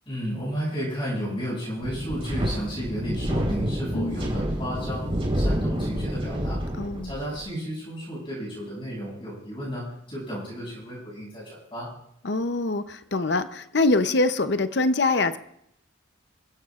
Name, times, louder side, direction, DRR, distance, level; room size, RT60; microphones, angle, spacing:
voice 1, 0.1-6.6 7.0-11.9, equal, 25° left, -6 dB, 7.0 m, -33 dB
Wind, 1.8-7.4, equal, 30° right, 4.3 m, -28 dB
voice 2, 6.8-7.1 12.2-15.4, left 2 dB, 60° left, 10 dB, 0.7 m, -24 dB
26.5 x 15.5 x 2.5 m, 0.76 s
head